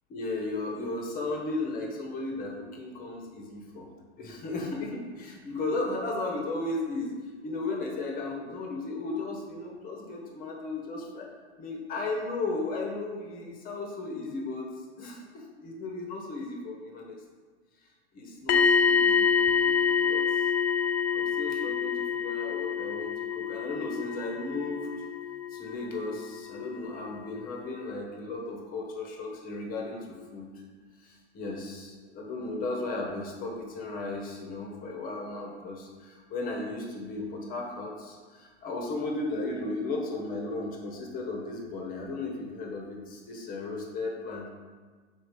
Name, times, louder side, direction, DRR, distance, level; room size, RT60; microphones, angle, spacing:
voice 1, 0.1-3.9 4.2-11.3 11.6-14.7 15.0-17.2 18.1-20.5 21.1-24.9 25.5-30.6 31.0-44.5, left 2 dB, 25° left, 0 dB, 1.0 m, -35 dB
sound 1, 18.5-26.4 26.6-26.9, left 6 dB, 60° left, 0.8 m, -27 dB
5.2 x 4.2 x 4.6 m, 1.5 s
hypercardioid pair, 130°, 35 cm